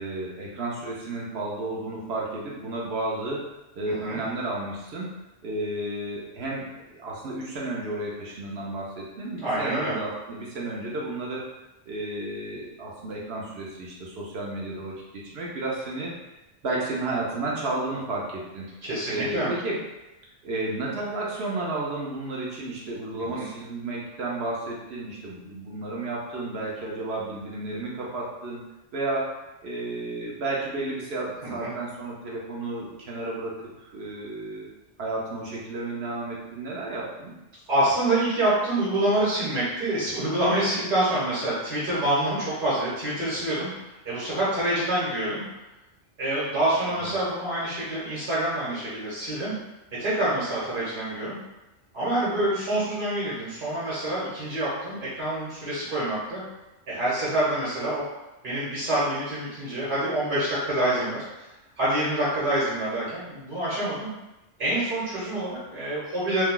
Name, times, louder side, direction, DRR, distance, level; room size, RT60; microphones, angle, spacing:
voice 1, 0.0-11.5 11.9-16.1 16.6-18.6 19.1-19.8 20.4-28.6 28.9-29.3 29.6-34.7 35.0-37.3 46.9-47.2, right 2 dB, 65° right, -4 dB, 0.9 m, -32 dB
voice 2, 3.9-4.2 9.4-10.0 18.8-19.5 23.2-23.5 31.4-31.7 37.7-43.7 44.0-45.4 46.2-49.5 50.0-51.4 51.9-56.4 56.9-58.0 58.4-61.5 61.8-64.1 64.6-66.4, right 1 dB, 45° right, -9 dB, 1.1 m, -26 dB
2.7 x 2.3 x 3.6 m, 0.99 s
omnidirectional pair, 1.3 m